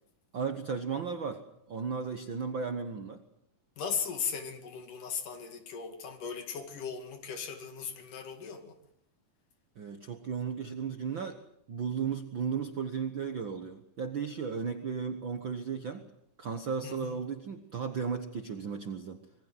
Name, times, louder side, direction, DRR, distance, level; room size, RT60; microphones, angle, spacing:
voice 1, 0.3-3.2 9.8-11.4 11.7-16.0 16.4-19.2, right 6 dB, 55° right, 1.3 m, -35 dB
voice 2, 3.8-8.8 16.8-17.2, left 6 dB, 65° left, 3.8 m, -37 dB
26.0 x 21.5 x 7.9 m
omnidirectional pair, 4.0 m